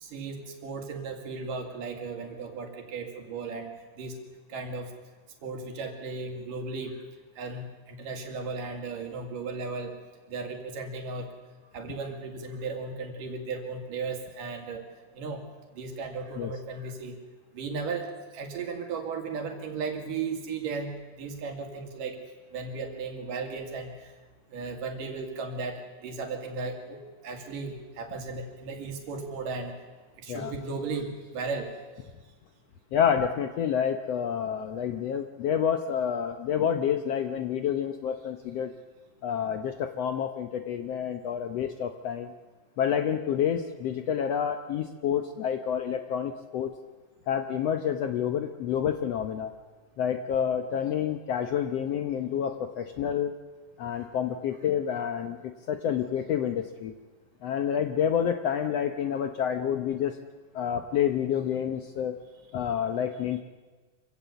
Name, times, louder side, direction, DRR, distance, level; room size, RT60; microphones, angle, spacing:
voice 1, 0.0-4.2 4.5-4.9 5.4-7.0 7.4-10.0 10.3-11.3 11.7-14.8 15.2-15.4 15.7-17.2 17.5-20.9 21.2-22.2 22.5-24.1 24.5-29.7 30.2-31.7 53.9-54.0, right 4 dB, 80° right, 4 dB, 3.9 m, -35 dB
voice 2, 32.9-38.7 39.2-42.3 42.8-46.7 47.3-49.5 50.0-53.3 53.8-56.9 57.4-60.2 60.5-62.2 62.5-63.4, left 8 dB, 70° left, 7 dB, 1.6 m, -28 dB
25.5 x 16.0 x 8.2 m, 1.4 s
omnidirectional pair, 3.8 m